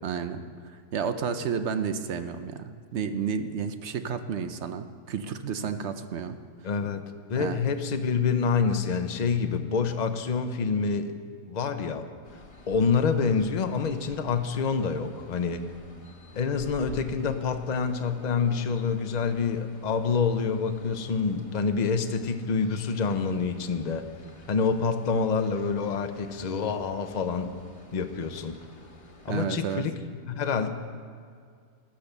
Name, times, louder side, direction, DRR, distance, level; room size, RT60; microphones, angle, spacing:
voice 1, 0.0-6.4 7.4-7.6 29.3-29.9, right 6 dB, 60° right, 9 dB, 0.8 m, -31 dB
voice 2, 6.6-7.0 7.3-11.1 11.5-12.1 12.7-15.6 16.4-24.1 24.5-27.6 27.9-28.6 29.2-30.0 30.3-30.7, left 5 dB, 45° left, 8 dB, 0.6 m, -27 dB
sound 1, 12.2-29.5, left 2 dB, 25° left, 1.1 m, -50 dB
13.0 x 10.5 x 6.7 m, 2.1 s
omnidirectional pair, 1.7 m